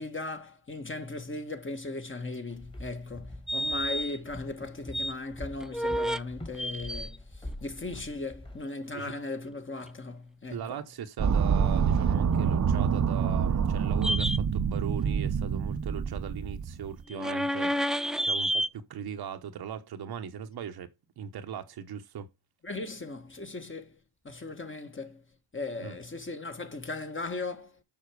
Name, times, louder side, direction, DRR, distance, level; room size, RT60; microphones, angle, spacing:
voice 1, 0.0-10.8 22.6-24.0 24.2-25.2 25.5-27.8, left 3 dB, 35° left, 1.9 m, -38 dB
Walk footsteps, 2.5-8.6, left 1 dB, 15° left, 2.1 m, -44 dB
sound 1, 3.5-4.2 4.6-5.1 5.6-6.2 6.5-7.2 14.0-14.4 17.1-18.7, equal, ahead, 0.6 m, -29 dB
voice 2, 10.5-20.9 21.2-22.3 25.8-26.0, right 8 dB, 90° right, 1.2 m, -39 dB
sound 2, 11.2-17.0, right 7 dB, 50° right, 0.8 m, -26 dB
7.2 x 5.8 x 4.9 m
cardioid pair, 65°, 37 cm